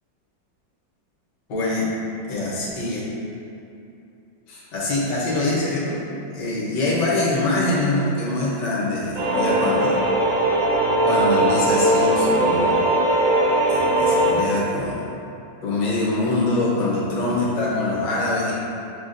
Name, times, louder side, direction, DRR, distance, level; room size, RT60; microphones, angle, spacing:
voice 1, 1.5-1.9 2.3-3.1 4.5-6.0 6.3-10.0 11.1-12.8 13.7-15.1 15.6-18.5, left 2 dB, 65° left, -6 dB, 1.5 m, -24 dB
sound 1, 9.1-14.3, right 1 dB, 85° right, 1.7 m, -19 dB
7.1 x 2.4 x 2.5 m, 2.7 s
omnidirectional pair, 2.1 m